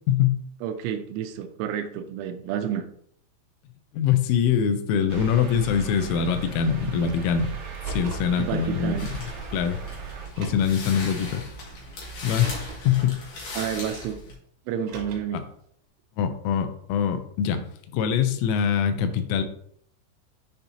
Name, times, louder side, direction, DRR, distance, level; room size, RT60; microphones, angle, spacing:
voice 1, 0.1-0.4 3.9-7.5 7.9-9.1 9.5-9.8 10.4-11.4 12.2-13.2 16.2-17.6 17.9-19.4, left 8 dB, 80° left, 7 dB, 3.1 m, -23 dB
voice 2, 0.6-2.9 8.4-9.1 13.6-14.2 14.7-15.4, right 9 dB, 80° right, 7 dB, 3.0 m, -30 dB
sound 1, 5.1-10.3, right 7 dB, 50° right, 2.9 m, -37 dB
Car, 7.6-8.4 9.4-9.5 10.2-10.8 12.2-12.9 14.7-15.4, right 3 dB, 65° right, 3.7 m, -39 dB
sound 2, 9.0-14.3, left 2 dB, 55° left, 3.0 m, -38 dB
10.0 x 4.3 x 2.8 m, 0.66 s
omnidirectional pair, 5.9 m